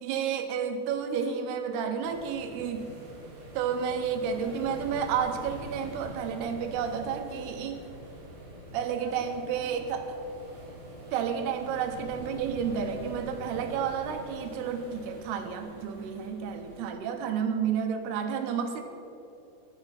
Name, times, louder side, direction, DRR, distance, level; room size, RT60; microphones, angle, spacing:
voice 1, 0.0-2.9 3.5-7.9 8.7-10.2 11.1-18.8, right 7 dB, 85° right, 6 dB, 2.9 m, -31 dB
sound 1, 2.0-16.9, right 1 dB, 50° right, 4.0 m, -45 dB
11.0 x 11.0 x 5.6 m, 2.8 s
omnidirectional pair, 4.6 m